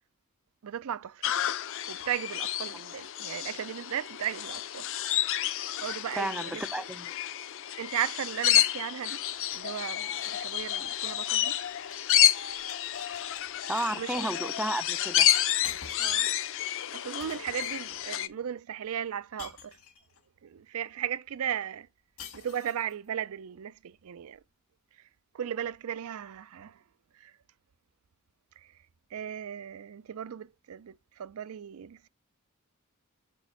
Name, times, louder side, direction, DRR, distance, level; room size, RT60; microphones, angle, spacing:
voice 1, 0.6-1.3 1.8-4.9 5.2-5.4 5.8-6.6 7.8-9.2 9.5-11.6 13.1-13.2 13.9-14.3 16.0-16.3 16.9-19.8 20.4-21.9 22.3-24.4 24.9-25.1 25.3-26.8 27.1-27.4 28.6-28.8 29.1-32.1, right 9 dB, 70° right, 0.4 m, -36 dB
sound 1, 1.2-18.3, left 11 dB, 65° left, 0.6 m, -29 dB
voice 2, 6.2-7.1 13.7-15.3, right 1 dB, 5° right, 0.4 m, -32 dB
sound 2, 9.2-12.1 12.4-13.4 13.8-14.2 15.3-15.4 15.6-16.2 17.2-18.1 19.4-20.2 22.2-22.9, left 7 dB, 80° left, 1.6 m, -48 dB
7.0 x 4.5 x 4.3 m
head